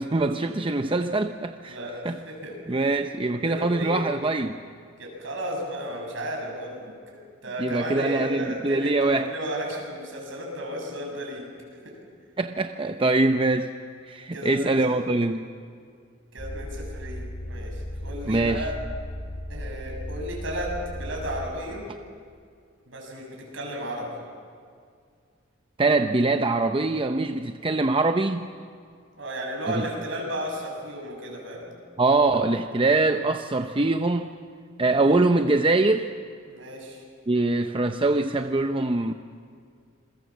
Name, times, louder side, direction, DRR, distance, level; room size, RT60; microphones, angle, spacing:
voice 1, 0.0-1.8 2.0-2.2 2.7-4.6 7.6-9.3 12.4-13.7 14.1-15.5 18.3-18.7 25.8-28.5 29.7-29.9 32.0-34.3 34.8-36.1 37.3-39.1, right 2 dB, 25° right, 7 dB, 0.7 m, -23 dB
voice 2, 1.7-2.9 3.5-4.0 5.0-11.4 14.3-15.0 16.3-18.7 19.5-21.9 22.9-24.1 29.2-31.7 36.5-37.0, equal, 70° right, 0 dB, 7.3 m, -34 dB
sound 1, 16.4-21.5, equal, 55° left, 3.0 m, -35 dB
27.5 x 22.0 x 7.3 m, 2.2 s
head